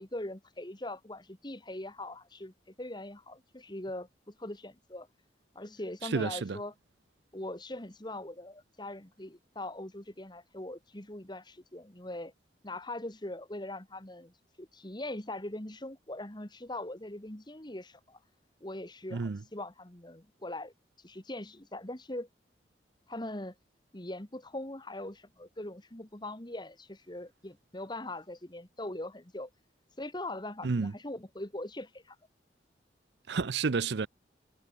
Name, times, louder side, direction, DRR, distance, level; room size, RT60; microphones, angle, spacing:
voice 1, 0.0-5.1 5.6-6.7 7.3-12.3 12.6-18.2 18.6-22.3 23.1-23.5 23.9-29.5 30.0-32.2, left 1 dB, 25° left, 1.9 m, -41 dB
voice 2, 6.1-6.6 19.1-19.4 30.6-30.9 33.3-34.1, right 4 dB, 65° right, 0.6 m, -30 dB
head